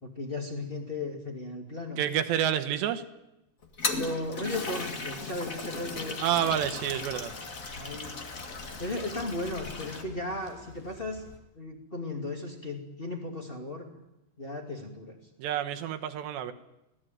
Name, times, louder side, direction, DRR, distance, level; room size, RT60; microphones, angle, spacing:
voice 1, 0.0-2.0 3.9-6.2 7.7-8.1 8.8-11.2 11.5-13.9 14.4-15.2, left 2 dB, 20° left, 1 dB, 1.5 m, -36 dB
voice 2, 2.0-3.0 6.2-7.3 15.4-16.5, right 10 dB, 80° right, 8 dB, 3.4 m, -28 dB
Toilet flush, 3.6-10.0, left 3 dB, 75° left, 0.7 m, -37 dB
sound 1, 6.3-11.4, left 3 dB, 55° left, 4.3 m, -50 dB
24.5 x 17.5 x 9.1 m, 0.91 s
omnidirectional pair, 5.0 m